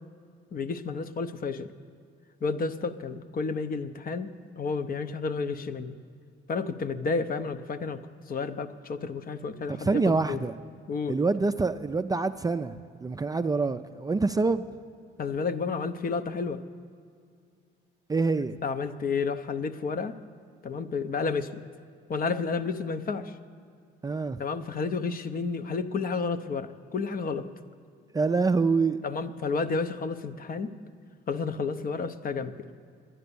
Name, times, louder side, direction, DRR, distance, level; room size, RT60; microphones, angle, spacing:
voice 1, 0.5-1.7 2.4-6.0 6.5-8.0 8.3-10.4 10.9-11.2 15.2-16.6 18.6-20.2 20.6-21.6 22.1-23.3 24.4-27.5 29.0-30.7 31.3-32.7, left 4 dB, 45° left, 0.7 m, -31 dB
voice 2, 9.7-10.5 11.1-14.6 18.1-18.6 24.0-24.4 28.1-29.0, right 4 dB, 20° right, 0.3 m, -26 dB
10.5 x 10.0 x 6.9 m
cardioid pair, 90°, 20 cm